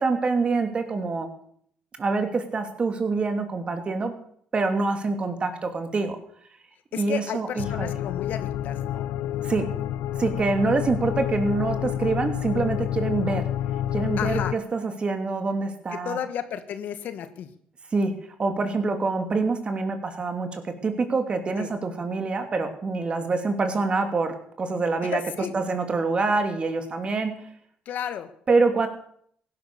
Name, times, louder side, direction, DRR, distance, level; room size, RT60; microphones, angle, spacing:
voice 1, 0.0-1.3 2.0-4.1 4.5-6.2 6.9-7.9 9.4-9.7 10.2-13.5 13.9-16.2 17.9-18.1 18.4-25.2 25.5-27.4 28.5-28.9, right 3 dB, 35° right, 6 dB, 2.9 m, -25 dB
voice 2, 6.9-9.1 14.2-14.6 15.9-17.5 21.6-21.7 25.0-25.5 27.8-28.3, left 9 dB, 70° left, 10 dB, 1.6 m, -33 dB
sound 1, 7.6-14.5, left 11 dB, 85° left, 0.6 m, -29 dB
16.5 x 11.5 x 6.9 m, 0.63 s
cardioid pair, 95°, 3 cm